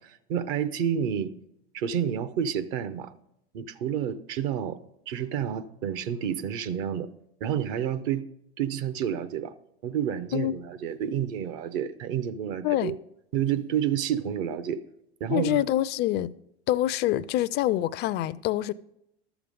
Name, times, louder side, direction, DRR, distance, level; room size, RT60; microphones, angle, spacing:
voice 1, 0.0-1.3 1.7-3.1 3.5-4.8 5.1-7.1 7.4-8.2 8.6-9.5 9.8-12.9 13.3-14.8 15.2-15.6, right 9 dB, 55° right, 0.8 m, -29 dB
voice 2, 12.6-13.0 15.3-16.3 16.7-18.7, left 14 dB, 35° left, 0.4 m, -26 dB
12.0 x 7.1 x 5.2 m
hypercardioid pair, 90°, 31 cm